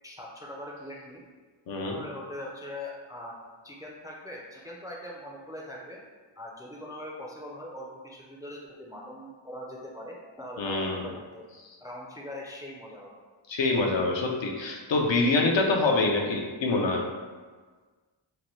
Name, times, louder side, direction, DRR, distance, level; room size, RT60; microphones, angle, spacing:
voice 1, 0.0-1.2 1.8-3.3 3.6-6.0 6.4-11.4 11.8-13.2, left 1 dB, 10° right, -3 dB, 0.3 m, -41 dB
voice 2, 1.7-2.0 10.6-11.1 13.5-17.0, left 3 dB, 70° left, 0 dB, 0.5 m, -25 dB
2.8 x 2.1 x 3.0 m, 1.4 s
wide cardioid pair, 60°, 48 cm